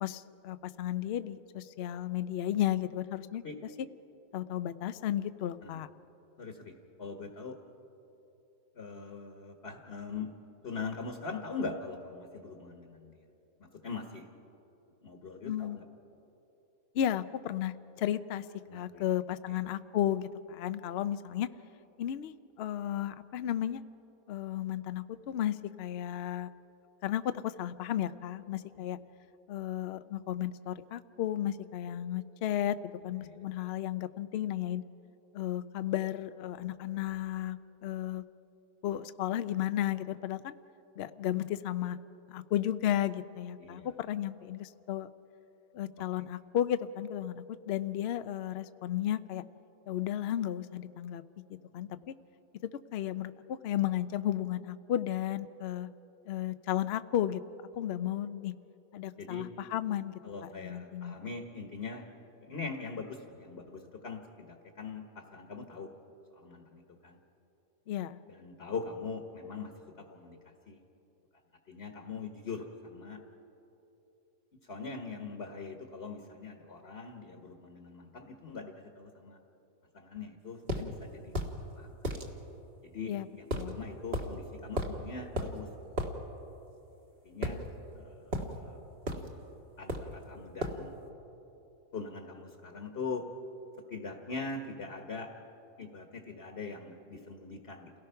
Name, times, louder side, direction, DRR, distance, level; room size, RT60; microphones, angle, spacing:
voice 1, 0.0-3.4 4.3-5.9 15.4-15.8 16.9-18.4 18.7-21.5 22.0-23.8 24.3-26.5 27.0-29.0 29.5-32.8 33.0-34.8 35.3-38.2 38.8-40.5 41.0-42.0 42.3-45.1 45.7-49.4 49.9-51.2 51.5-52.1 52.9-55.9 56.3-57.4 57.8-58.5 58.9-61.2 67.9-68.2 83.1-83.3 83.5-83.8, left 11 dB, 60° left, 13 dB, 0.7 m, -34 dB
voice 2, 6.4-7.6 8.7-10.3 10.6-13.2 13.6-14.3 15.0-15.8 18.7-19.0 19.5-19.6 28.7-28.9 33.2-33.4 43.6-43.9 59.2-59.5 60.2-62.1 62.4-65.9 66.3-67.2 68.3-69.7 70.0-70.8 71.7-73.2 74.7-79.4 79.9-81.3 81.8-82.2 82.8-85.7 87.2-87.6 87.9-88.8 89.8-91.0 91.9-93.3 93.9-95.3 95.8-97.9, left 4 dB, 45° left, 4 dB, 1.5 m, -42 dB
sound 1, 80.7-80.9 81.3-81.5 82.0-82.3 83.5-83.7 84.1-84.3 84.8-85.0 85.4-85.5 86.0-86.1 87.4-88.0 88.3-88.5 89.1-89.3 89.9-90.2 90.6-90.8, equal, 40° right, 1.8 m, -33 dB
29.0 x 18.0 x 5.7 m, 2.9 s
omnidirectional pair, 1.6 m